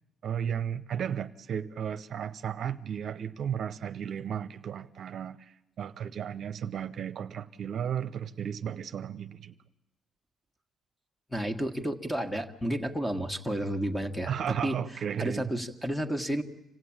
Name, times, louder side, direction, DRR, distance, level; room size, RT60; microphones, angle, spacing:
voice 1, 0.2-9.6 14.3-15.5, right 8 dB, 60° right, 10 dB, 0.7 m, -34 dB
voice 2, 11.3-14.3 14.6-14.7 15.2-16.4, equal, 5° left, 7 dB, 1.7 m, -31 dB
26.5 x 16.0 x 8.8 m, 0.96 s
cardioid pair, 90°, 0 cm